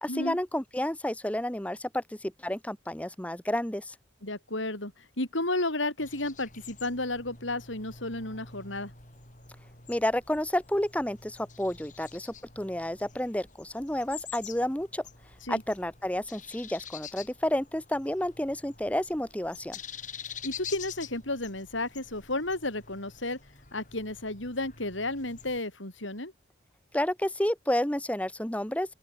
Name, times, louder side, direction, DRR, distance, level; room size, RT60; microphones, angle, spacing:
voice 1, 0.0-3.9 9.9-15.0 15.5-19.8 26.9-28.9, left 1 dB, 5° left, 1.0 m, -30 dB
voice 2, 4.2-8.9 15.4-15.6 20.4-23.4 23.7-26.3, left 2 dB, 80° left, 7.4 m, -32 dB
sound 1, 6.0-25.6, left 7 dB, 40° left, 7.7 m, -47 dB
open air
head